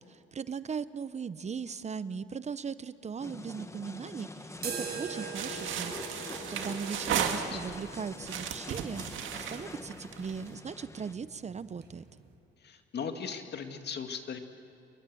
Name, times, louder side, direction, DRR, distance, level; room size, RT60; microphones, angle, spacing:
voice 1, 0.0-5.9 6.2-12.1, right 6 dB, 35° right, 15 dB, 0.7 m, -39 dB
sound 1, 3.2-11.1, left 2 dB, 15° left, 1.2 m, -45 dB
sound 2, 4.6-12.3, right 4 dB, 55° right, 5.4 m, -44 dB
sound 3, 5.3-7.8 8.2-10.5, right 8 dB, 75° right, 2.0 m, -35 dB
voice 2, 7.2-7.6 12.6-14.4, left 6 dB, 60° left, 6 dB, 2.1 m, -38 dB
28.5 x 22.0 x 7.7 m, 2.4 s
cardioid pair, 90°, 20 cm